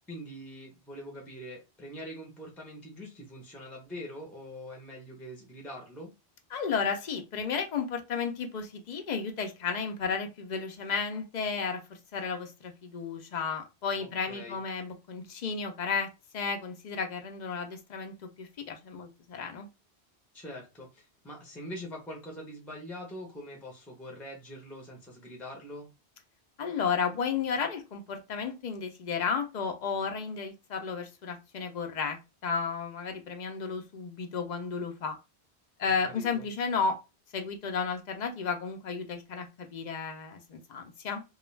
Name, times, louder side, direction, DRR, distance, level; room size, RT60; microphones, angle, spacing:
voice 1, 0.1-6.1 14.0-14.6 20.3-25.9 35.8-36.5, equal, ahead, 0.6 m, -43 dB
voice 2, 6.5-11.8 12.1-19.7 26.6-35.2 35.8-37.0 37.3-41.2, left 5 dB, 55° left, 0.6 m, -33 dB
2.4 x 2.2 x 3.1 m
omnidirectional pair, 1.1 m